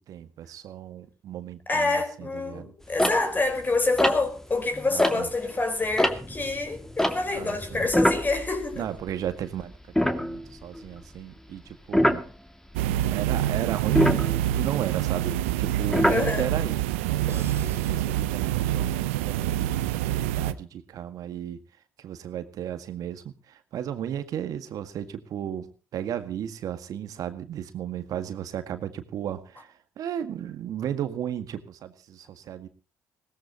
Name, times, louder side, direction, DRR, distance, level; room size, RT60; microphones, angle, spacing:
voice 1, 0.1-2.7 4.9-5.3 7.3-7.9 8.8-9.7 10.0-12.2 13.0-14.2 14.5-21.6 22.0-32.7, right 10 dB, 60° right, 1.9 m, -35 dB
voice 2, 1.7-8.9 16.1-16.5, left 3 dB, 25° left, 4.5 m, -27 dB
sound 1, 2.9-5.5 5.8-9.3 9.6-9.7 10.0-10.8 11.9-12.3 13.8-16.7 17.3-18.0, left 1 dB, 5° left, 2.4 m, -26 dB
sound 2, 12.7-20.5, right 13 dB, 80° right, 0.8 m, -26 dB
sound 3, 17.3-19.1, right 5 dB, 35° right, 4.1 m, -48 dB
21.0 x 17.5 x 3.0 m
hypercardioid pair, 55°, 7 cm